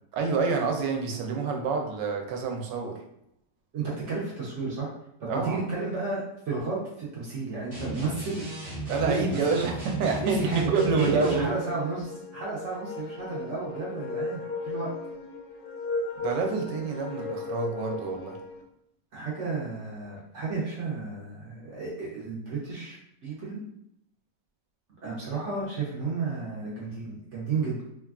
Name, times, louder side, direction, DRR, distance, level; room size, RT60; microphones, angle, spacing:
voice 1, 0.1-3.0 5.3-5.6 8.9-11.5 16.2-18.4, right 5 dB, 80° right, 2 dB, 1.2 m, -28 dB
voice 2, 3.7-4.9 5.2-8.5 8.9-9.4 10.2-10.6 10.9-14.9 19.1-23.0 23.2-23.6 25.0-27.8, right 4 dB, 60° right, -6 dB, 0.8 m, -32 dB
sound 1, 7.7-11.5, right 2 dB, 30° right, 1.2 m, -35 dB
sound 2, 10.5-18.6, left 3 dB, 80° left, 0.7 m, -35 dB
3.2 x 2.3 x 2.3 m, 0.78 s
omnidirectional pair, 1.9 m